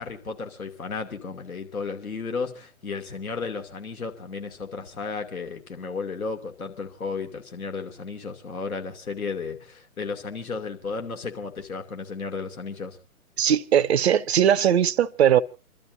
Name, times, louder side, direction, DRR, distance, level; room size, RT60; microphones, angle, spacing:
voice 1, 0.0-13.0, left 4 dB, 70° left, 2.7 m, -34 dB
voice 2, 13.4-15.4, right 9 dB, 50° right, 0.6 m, -20 dB
28.5 x 12.5 x 2.7 m
figure-of-eight pair, 135°, 44 cm